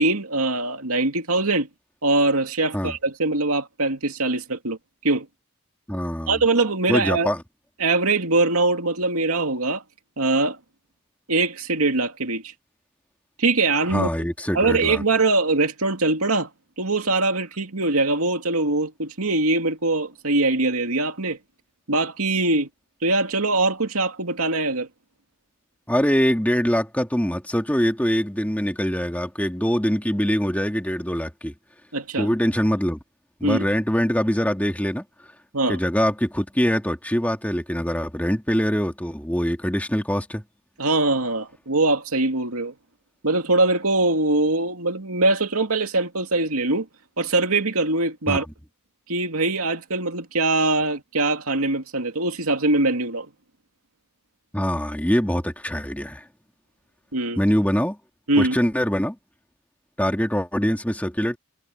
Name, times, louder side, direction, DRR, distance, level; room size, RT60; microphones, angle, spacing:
voice 1, 0.0-1.7 2.0-4.8 5.0-5.3 6.3-7.3 7.8-9.8 10.2-10.6 11.3-12.4 13.4-14.1 14.5-16.5 16.8-21.4 21.9-22.7 23.0-24.9 31.9-32.3 33.4-33.7 35.5-35.8 40.8-42.7 43.2-46.9 47.2-48.4 49.1-53.3 57.1-57.4 58.3-58.6, right 2 dB, 85° right, 2.6 m, -22 dB
voice 2, 5.9-6.4 6.9-7.4 13.9-15.0 25.9-31.5 32.2-33.0 33.4-35.0 35.7-40.4 48.3-48.4 54.5-56.2 57.4-58.0 58.4-59.2 60.0-61.4, equal, 5° left, 2.4 m, -23 dB
head